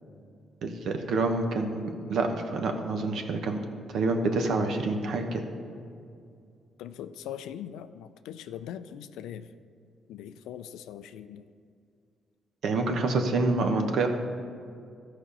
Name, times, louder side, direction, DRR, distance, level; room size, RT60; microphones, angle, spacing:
voice 1, 0.6-3.6 3.9-5.4 12.6-14.1, right 3 dB, 70° right, 5 dB, 1.0 m, -27 dB
voice 2, 6.8-9.5 10.1-11.4, left 10 dB, 85° left, 12 dB, 0.4 m, -41 dB
13.5 x 5.1 x 5.5 m, 2.4 s
supercardioid pair, 60°, 0 cm